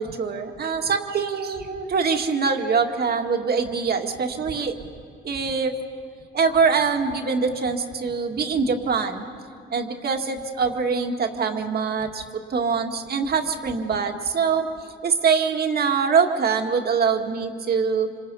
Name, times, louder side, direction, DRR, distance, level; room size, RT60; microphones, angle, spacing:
voice 1, 0.0-4.7 5.2-5.7 6.3-9.2 9.7-14.7 15.0-18.1, right 5 dB, 50° right, 4 dB, 2.1 m, -23 dB
27.0 x 26.0 x 5.6 m, 2.4 s
cardioid pair, 90°, 20 cm